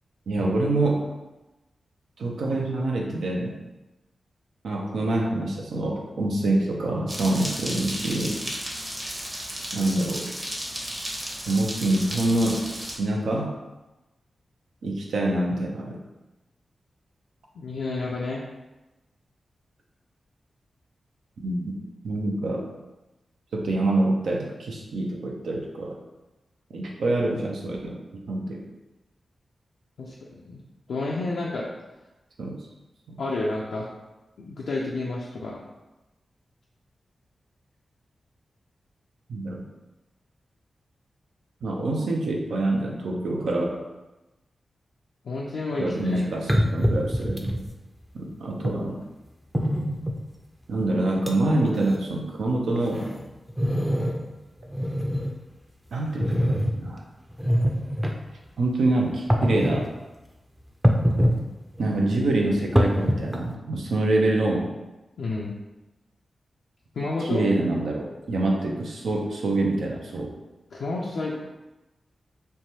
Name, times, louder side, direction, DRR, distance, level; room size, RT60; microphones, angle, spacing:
voice 1, 0.3-1.0 2.2-3.5 4.6-8.4 9.7-10.3 11.5-12.7 13.0-13.5 14.8-16.0 21.4-21.7 22.0-22.6 23.5-26.0 26.7-28.0 28.3-28.6 32.4-32.6 33.1-33.2 39.3-39.6 41.6-43.8 45.8-47.5 48.1-49.0 50.7-53.1 55.9-57.0 58.6-59.9 61.8-64.7 67.2-70.3, right 2 dB, 80° right, 0 dB, 0.5 m, -26 dB
sound 1, 7.1-13.0, equal, 35° right, 0.9 m, -34 dB
voice 2, 17.6-18.5 30.0-30.6 30.9-31.7 33.2-33.9 34.4-35.6 45.2-46.2 65.2-65.5 66.9-67.4 70.7-71.4, left 2 dB, 80° left, -5 dB, 0.3 m, -30 dB
sound 2, 46.0-46.1 46.5-47.7 48.6-48.8 49.5-50.2 50.8-50.9 51.3-51.4 51.7-52.0 52.5-54.3 54.6-55.4 56.2-56.7 57.3-58.1 59.1-59.9 60.8-61.4 61.7-63.5, equal, 10° right, 0.4 m, -24 dB
3.2 x 2.2 x 2.7 m, 1.0 s
cardioid pair, 40°, 0 cm